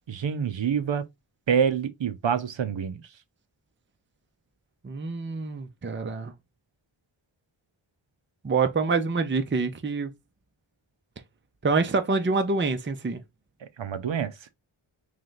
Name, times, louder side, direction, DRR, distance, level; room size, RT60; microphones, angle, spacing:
voice 1, 0.1-1.0 1.5-3.0 13.6-14.3, right 7 dB, 65° right, 0.7 m, -26 dB
voice 2, 4.8-6.3 8.4-10.1 11.6-13.2, right 4 dB, 25° right, 0.6 m, -26 dB
3.3 x 3.3 x 3.8 m
wide cardioid pair, 55°, 49 cm